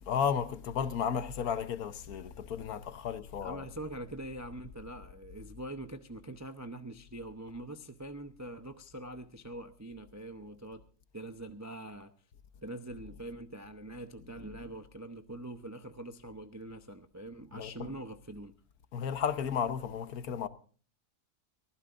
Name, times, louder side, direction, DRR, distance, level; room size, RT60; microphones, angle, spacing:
voice 1, 0.0-3.7 17.5-17.9 18.9-20.5, left 7 dB, 70° left, 1.4 m, -33 dB
voice 2, 3.4-10.8 11.1-12.1 12.6-18.5, right 1 dB, 25° right, 0.3 m, -44 dB
23.0 x 15.5 x 2.5 m
omnidirectional pair, 1.7 m